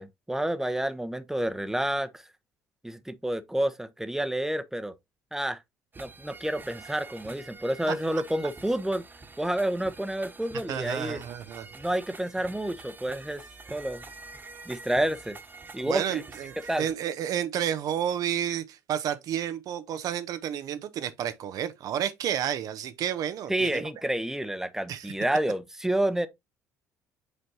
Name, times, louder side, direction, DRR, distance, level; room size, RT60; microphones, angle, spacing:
voice 1, 0.0-2.2 2.8-4.9 5.3-5.6 6.0-9.0 9.4-11.2 11.7-13.4 13.7-14.0 14.7-15.4 15.7-16.2 16.7-16.8 23.5-26.3, right 1 dB, 5° right, 0.8 m, -29 dB
sound 1, 5.9-16.9, right 3 dB, 25° right, 1.2 m, -47 dB
voice 2, 10.7-11.7 15.8-23.8 24.9-25.1, right 10 dB, 55° right, 0.6 m, -31 dB
7.9 x 4.4 x 2.7 m
hypercardioid pair, 55°, 7 cm